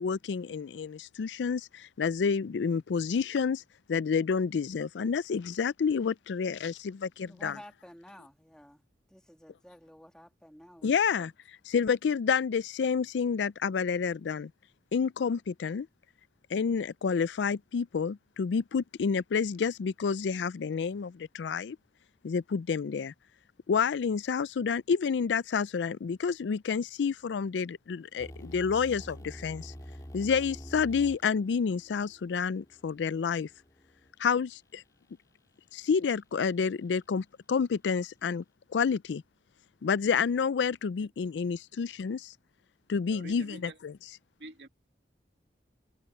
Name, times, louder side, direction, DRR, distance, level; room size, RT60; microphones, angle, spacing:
voice 1, 0.0-3.6 3.9-7.6 10.8-11.3 11.7-14.5 14.9-15.9 16.5-21.8 22.2-23.1 23.7-29.7 30.1-33.5 34.2-34.8 35.7-38.4 38.7-39.2 39.8-42.3 42.9-44.0, left 6 dB, 85° left, 0.4 m, -29 dB
voice 2, 7.2-8.8 9.1-11.3, equal, 5° left, 1.9 m, -52 dB
sound 1, 28.2-34.1, equal, 20° left, 2.7 m, -47 dB
voice 3, 43.1-43.8 44.4-44.7, right 2 dB, 70° right, 2.4 m, -46 dB
head